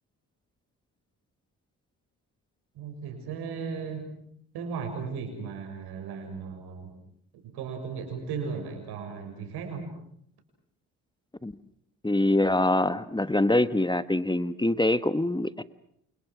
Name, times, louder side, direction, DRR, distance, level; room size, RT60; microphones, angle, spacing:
voice 1, 2.7-4.1 4.5-6.9 7.4-9.8, right 5 dB, 85° right, 5 dB, 6.8 m, -36 dB
voice 2, 12.0-15.6, left 1 dB, 10° left, 13 dB, 1.3 m, -24 dB
29.0 x 28.0 x 6.3 m, 0.70 s
supercardioid pair, 50°, 38 cm